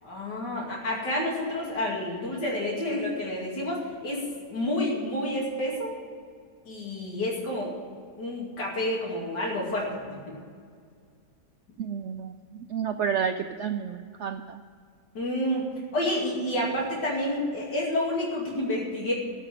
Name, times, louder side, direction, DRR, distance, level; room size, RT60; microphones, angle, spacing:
voice 1, 0.0-4.2 4.5-5.9 6.6-7.7 8.2-10.3 15.1-15.6 15.9-19.1, left 1 dB, 85° left, -4 dB, 3.1 m, -29 dB
voice 2, 11.8-12.4 12.7-14.6, right 7 dB, 75° right, 7 dB, 0.6 m, -30 dB
14.0 x 5.8 x 9.1 m, 2.1 s
omnidirectional pair, 1.8 m